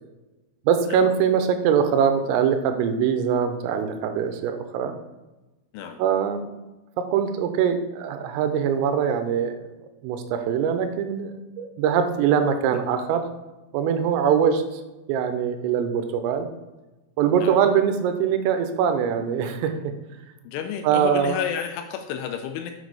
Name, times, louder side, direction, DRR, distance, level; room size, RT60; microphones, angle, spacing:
voice 1, 0.7-5.0 6.0-6.4 7.0-9.6 10.0-13.3 13.7-14.8 15.1-16.5 17.2-19.9 20.8-21.4, right 7 dB, 85° right, 8 dB, 3.4 m, -22 dB
voice 2, 20.4-22.7, left 8 dB, 80° left, 6 dB, 2.8 m, -31 dB
7.7 x 6.3 x 4.8 m, 1.1 s
omnidirectional pair, 5.9 m